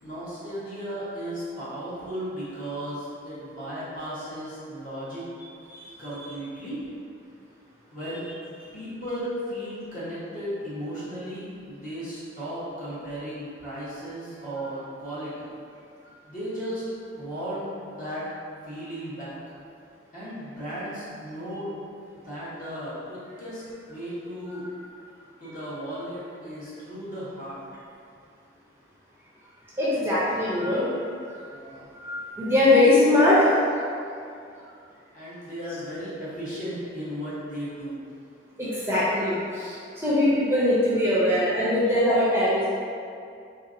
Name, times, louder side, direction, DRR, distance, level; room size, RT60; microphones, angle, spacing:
voice 1, 0.0-5.2 6.0-6.8 7.9-8.2 8.7-15.5 16.3-16.8 17.2-18.2 18.6-19.6 20.1-21.7 22.2-24.7 25.4-27.6 31.5-31.9 35.1-38.0, equal, 45° left, -10 dB, 1.1 m, -35 dB
voice 2, 29.8-30.9 31.2-31.4 32.0-33.5 38.6-42.7, left 1 dB, 15° right, -9 dB, 0.6 m, -21 dB
3.5 x 2.7 x 2.5 m, 2.4 s
head